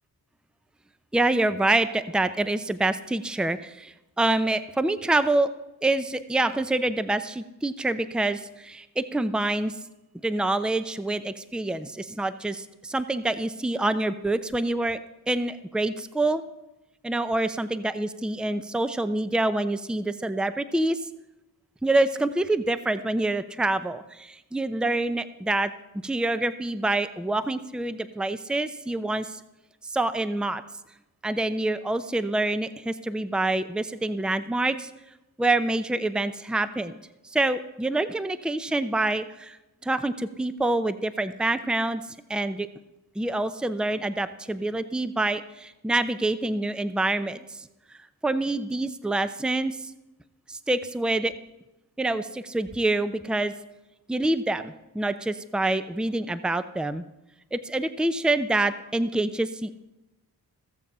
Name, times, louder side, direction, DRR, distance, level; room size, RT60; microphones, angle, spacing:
voice 1, 1.1-5.5 5.8-9.7 10.2-15.0 15.3-16.4 17.0-21.0 21.8-25.7 26.0-29.4 29.8-30.6 31.2-34.9 35.4-37.0 37.3-39.6 39.8-42.0 42.3-42.7 43.2-47.7 48.2-49.8 50.5-51.3 52.0-53.5 54.1-57.0 57.5-59.9, right 2 dB, ahead, 12 dB, 0.6 m, -26 dB
16.5 x 7.2 x 5.5 m, 0.97 s
cardioid pair, 55°, 37 cm